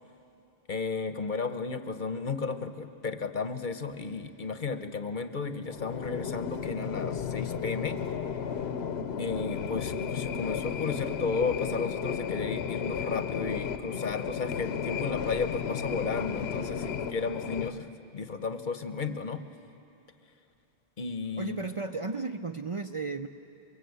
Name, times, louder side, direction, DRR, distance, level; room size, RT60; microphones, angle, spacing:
voice 1, 0.7-8.0 9.2-17.9 18.1-19.4 21.0-21.6, left 4 dB, 55° left, 9 dB, 1.0 m, -33 dB
sound 1, 5.7-17.7, left 7 dB, 90° left, 1.0 m, -33 dB
voice 2, 21.4-23.3, right 4 dB, 40° right, 6 dB, 0.6 m, -34 dB
23.5 x 23.0 x 8.3 m, 2.8 s
omnidirectional pair, 1.0 m